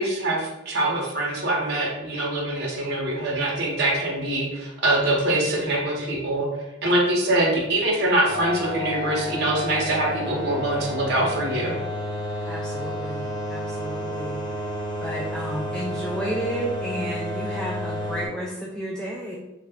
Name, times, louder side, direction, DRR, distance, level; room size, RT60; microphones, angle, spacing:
voice 1, 0.0-6.5 6.8-11.7, right 1 dB, 55° right, -3 dB, 1.0 m, -24 dB
sound 1, 8.3-18.3, left 1 dB, 20° left, 0.9 m, -31 dB
voice 2, 12.4-14.4 15.0-19.4, right 1 dB, 5° left, -4 dB, 0.4 m, -32 dB
3.2 x 2.4 x 3.4 m, 0.97 s
head